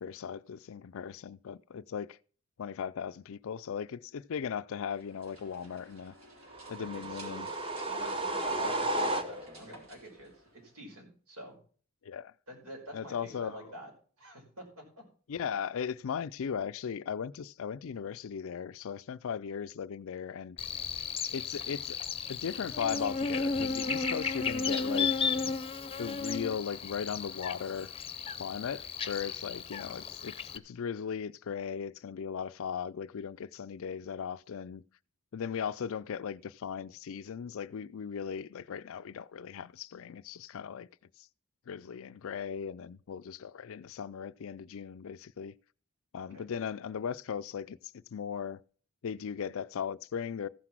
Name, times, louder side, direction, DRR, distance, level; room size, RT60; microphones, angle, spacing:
voice 1, 0.0-2.2 2.6-6.1 6.7-7.5 8.4-8.7 12.0-12.3 12.9-13.6 15.3-20.6 21.3-22.0 22.3-25.2 26.0-27.9 28.4-34.8 35.3-40.9 41.2-41.3 41.7-45.5 46.1-48.6 49.0-50.5, left 7 dB, 65° left, 0.4 m, -37 dB
sound 1, 4.8-11.0, right 1 dB, 65° right, 3.6 m, -54 dB
sound 2, 6.5-9.7, right 2 dB, 25° right, 1.0 m, -33 dB
voice 2, 6.9-7.5 7.9-11.6 12.5-13.9 14.2-15.0 46.3-46.5, equal, 80° right, 5.2 m, -48 dB
Buzz, 20.6-30.6, left 5 dB, 25° left, 0.7 m, -34 dB
14.5 x 5.9 x 6.1 m
head